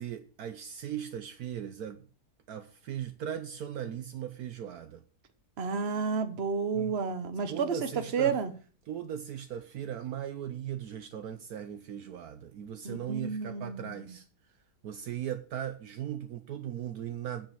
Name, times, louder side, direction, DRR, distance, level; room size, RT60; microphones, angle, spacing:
voice 1, 0.0-2.0 2.5-5.0 6.7-6.9 7.5-8.4 8.9-14.2 14.8-17.5, right 10 dB, 70° right, 8 dB, 1.2 m, -38 dB
voice 2, 5.6-8.5 12.8-14.1, right 5 dB, 45° right, 9 dB, 1.2 m, -31 dB
9.1 x 5.6 x 7.1 m, 0.39 s
omnidirectional pair, 1.8 m